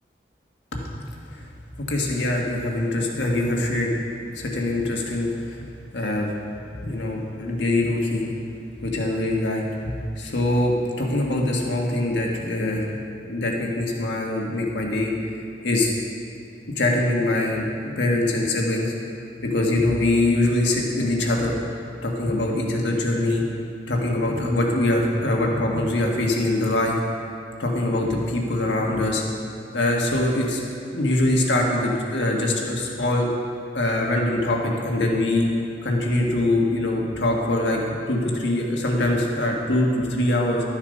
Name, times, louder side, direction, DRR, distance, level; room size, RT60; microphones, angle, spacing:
voice 1, 0.7-1.1 1.9-3.9 4.3-5.6 5.9-6.3 6.8-8.3 8.8-12.9 13.2-15.1 15.6-15.9 16.8-18.9 19.5-21.6 22.0-23.4 23.9-27.0 27.6-29.2 29.7-30.6 30.9-33.3 33.7-35.5 35.8-37.8 38.1-40.6, left 1 dB, 90° left, -1 dB, 1.6 m, -23 dB
12.0 x 7.2 x 5.3 m, 2.5 s
head